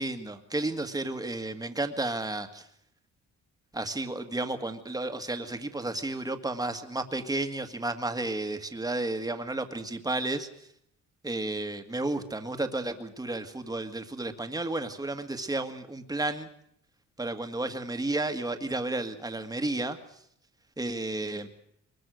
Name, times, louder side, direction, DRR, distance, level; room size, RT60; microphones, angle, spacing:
voice 1, 0.0-2.7 3.7-10.5 11.2-16.5 17.2-20.2 20.8-21.5, right 2 dB, 10° right, 7 dB, 2.0 m, -32 dB
23.0 x 21.5 x 6.5 m, 0.70 s
cardioid pair, 90°, 30 cm